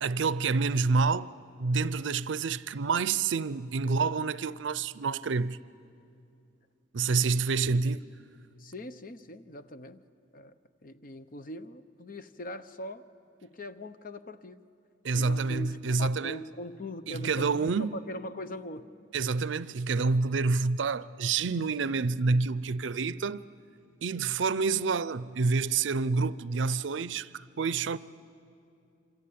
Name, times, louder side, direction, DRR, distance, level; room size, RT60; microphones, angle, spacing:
voice 1, 0.0-1.3 1.6-5.6 6.9-8.1 15.0-16.4 17.1-18.0 19.1-23.5 24.0-28.0, right 4 dB, 75° right, 0.6 m, -28 dB
voice 2, 8.6-10.0 10.3-10.5 10.8-13.0 13.4-14.6 15.1-18.9, left 1 dB, 45° left, 0.8 m, -41 dB
27.5 x 25.0 x 8.6 m
head